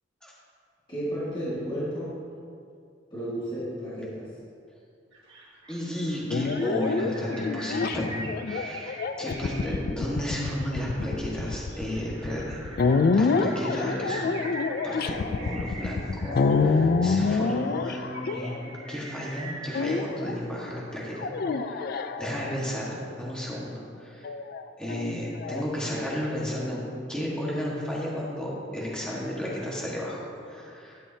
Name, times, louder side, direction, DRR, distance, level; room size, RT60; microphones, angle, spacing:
voice 1, 0.9-2.2 3.1-4.3, equal, 25° left, -11 dB, 2.0 m, -32 dB
sound 1, 5.1-20.0, right 2 dB, 85° right, 1.8 m, -43 dB
voice 2, 5.7-14.3 14.8-24.3 24.8-26.8 27.1-31.0, equal, 5° left, -6 dB, 1.5 m, -33 dB
sound 2, 6.3-18.9 19.7-20.4 21.2-22.7 24.2-25.6, left 4 dB, 55° left, 0.4 m, -27 dB
12.0 x 7.4 x 2.8 m, 2.4 s
head